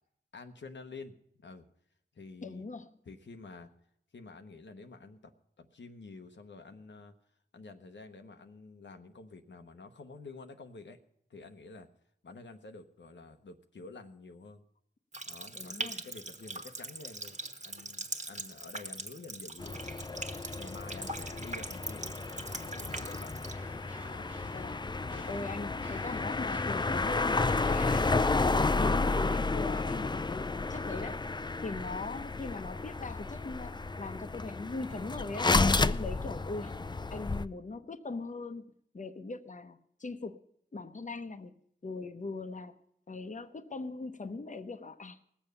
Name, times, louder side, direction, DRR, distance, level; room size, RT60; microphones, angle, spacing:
voice 1, 0.3-1.6 2.1-2.7 3.0-3.7 4.1-5.3 5.6-7.1 7.5-11.0 11.3-11.9 12.2-14.7 15.3-20.1 20.5-23.3 23.9-24.3 25.1-25.7, left 3 dB, 90° left, 5 dB, 1.0 m, -49 dB
voice 2, 2.4-2.9 15.5-16.0 24.5-24.9 25.3-31.2 31.6-36.7 37.1-38.7 38.9-40.4 40.7-41.5 41.8-42.8 43.1-45.2, left 3 dB, 45° left, 9 dB, 0.8 m, -40 dB
Water tap faucet, 15.1-23.5, right 2 dB, 40° right, 1.4 m, -41 dB
sound 1, 19.6-37.5, left 3 dB, 25° left, 0.4 m, -32 dB
sound 2, 21.2-28.0, right 1 dB, 5° right, 1.8 m, -57 dB
18.5 x 7.2 x 6.7 m, 0.72 s
cardioid pair, 45°, 18 cm